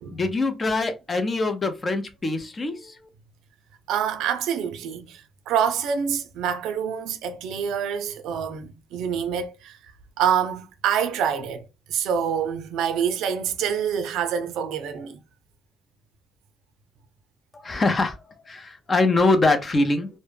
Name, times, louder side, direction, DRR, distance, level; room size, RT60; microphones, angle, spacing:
voice 1, 0.1-3.0 17.6-18.2 18.5-20.1, left 2 dB, 35° left, 0.5 m, -23 dB
voice 2, 3.9-9.8 10.2-15.2, right 8 dB, 90° right, 0.4 m, -26 dB
2.1 x 2.1 x 3.2 m
cardioid pair, 90°, 0 cm